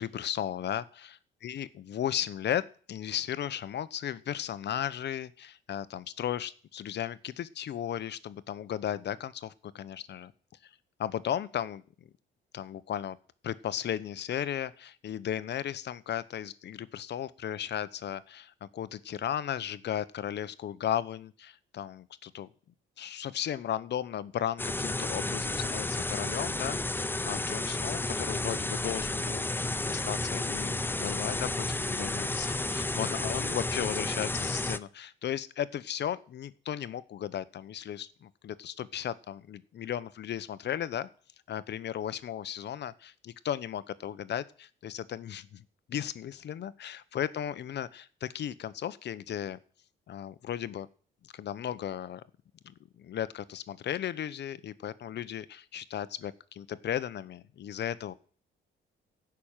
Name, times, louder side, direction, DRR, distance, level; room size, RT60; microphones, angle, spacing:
voice 1, 0.0-1.1 1.4-10.3 11.0-11.8 12.5-13.2 13.4-22.5 23.0-29.4 29.9-41.1 41.5-49.6 50.1-50.9 51.2-52.2 52.6-58.1, left 10 dB, 60° left, 16 dB, 0.9 m, -35 dB
sound 1, 24.6-34.8, left 2 dB, 10° left, 0.6 m, -32 dB
14.5 x 6.1 x 8.9 m, 0.43 s
cardioid pair, 90°, 20 cm